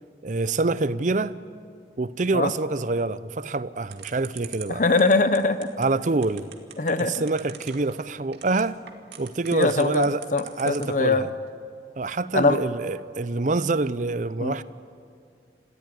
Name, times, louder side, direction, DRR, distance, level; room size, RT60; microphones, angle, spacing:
voice 1, 0.2-1.4 2.0-4.8 5.8-6.5 7.0-8.8 9.2-10.3 10.6-11.3 12.0-14.6, right 3 dB, 45° right, 0.6 m, -26 dB
sound 1, 3.9-11.0, right 11 dB, 75° right, 2.1 m, -41 dB
voice 2, 4.7-5.7 6.8-7.1 9.5-11.2 12.3-12.6 14.4-14.6, left 3 dB, 45° left, 0.8 m, -22 dB
27.0 x 15.5 x 9.6 m
head